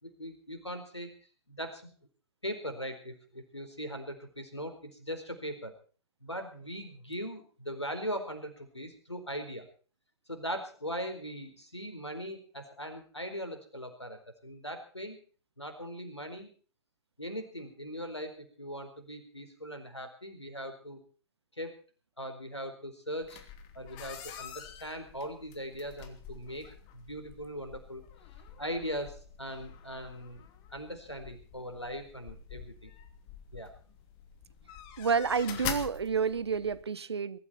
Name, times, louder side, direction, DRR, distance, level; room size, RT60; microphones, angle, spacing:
voice 1, 0.0-1.1 1.5-1.9 2.4-5.7 6.2-9.7 10.3-15.2 15.6-16.5 17.2-21.0 21.6-21.7 22.2-23.4 23.7-26.7 26.9-28.0 28.6-32.9 33.5-33.7, equal, 90° left, 4.5 m, -40 dB
sound 1, 23.2-36.8, left 8 dB, 35° left, 2.9 m, -46 dB
voice 2, 35.0-37.4, right 6 dB, 70° right, 1.3 m, -29 dB
22.5 x 13.5 x 4.3 m
figure-of-eight pair, 110°, 14 cm